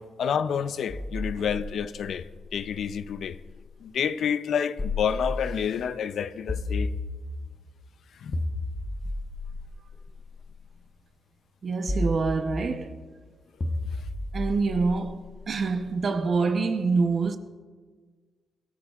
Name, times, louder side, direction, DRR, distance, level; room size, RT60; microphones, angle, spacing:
voice 1, 0.0-3.4 3.8-6.9 8.2-8.3, left 7 dB, 55° left, 0.4 m, -29 dB
sound 1, 0.9-3.7 4.8-5.8 6.5-7.6 8.3-10.6 11.9-13.0 13.6-15.8, left 2 dB, 15° left, 1.0 m, -33 dB
voice 2, 11.6-13.0 13.7-13.8 14.3-17.4, right 4 dB, 35° right, 0.7 m, -26 dB
22.0 x 13.5 x 2.4 m
wide cardioid pair, 170°, 0 cm